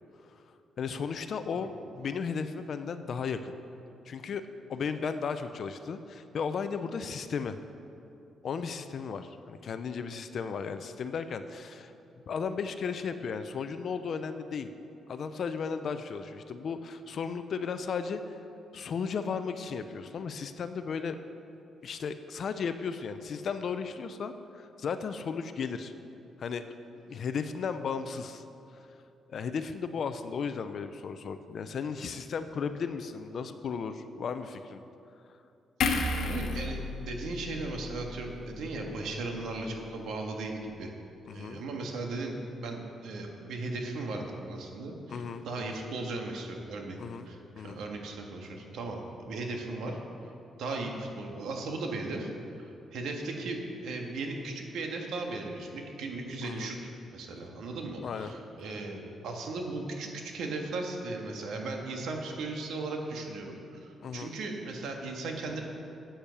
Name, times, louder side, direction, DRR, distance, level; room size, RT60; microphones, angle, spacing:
voice 1, 0.8-3.6 4.1-4.4 4.7-7.6 8.4-11.9 12.3-14.7 15.1-18.4 18.7-21.2 21.8-25.9 26.4-26.6 27.1-28.4 28.7-28.8 29.3-34.8 41.3-41.6 45.1-45.8 47.0-47.3 47.6-47.8 56.4-56.7 58.0-58.3 64.0-64.3, left 6 dB, 55° left, 10 dB, 0.6 m, -35 dB
sound 1, 35.8-39.2 39.5-39.7, left 3 dB, 75° left, 1.2 m, -33 dB
voice 2, 36.2-40.9 41.3-47.0 47.2-50.0 50.6-52.3 52.6-65.6, right 2 dB, 80° right, 2 dB, 1.6 m, -37 dB
10.5 x 8.8 x 6.9 m, 2.8 s
cardioid pair, 120°, 0 cm